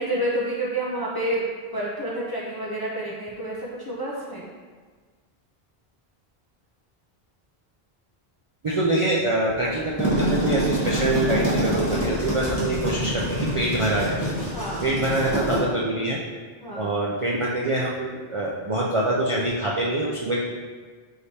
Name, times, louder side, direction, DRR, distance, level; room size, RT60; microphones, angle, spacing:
voice 1, 0.0-1.5 1.7-4.5 14.5-14.9 16.6-16.9, right 1 dB, 35° left, -5 dB, 0.4 m, -29 dB
voice 2, 8.6-14.2 14.8-16.2 16.7-20.4, right 1 dB, 55° right, -4 dB, 0.3 m, -25 dB
sound 1, 9.8-15.6, equal, 15° left, 1.2 m, -26 dB
4.8 x 3.3 x 2.7 m, 1.5 s
omnidirectional pair, 1.0 m